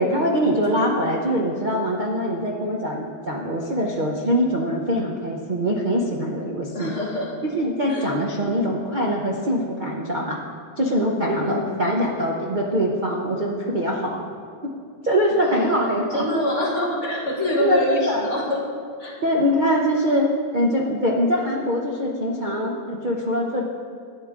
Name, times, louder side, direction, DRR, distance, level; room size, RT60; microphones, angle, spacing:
voice 1, 0.0-6.9 7.4-10.4 10.8-14.2 15.0-16.2 17.5-18.2 19.2-23.6, equal, 80° right, -2 dB, 0.4 m, -23 dB
voice 2, 6.7-7.3 7.9-8.1 11.4-11.9 15.4-18.6 19.0-19.1, left 1 dB, 40° left, -4 dB, 1.8 m, -26 dB
11.5 x 9.2 x 3.7 m, 2.3 s
omnidirectional pair, 2.2 m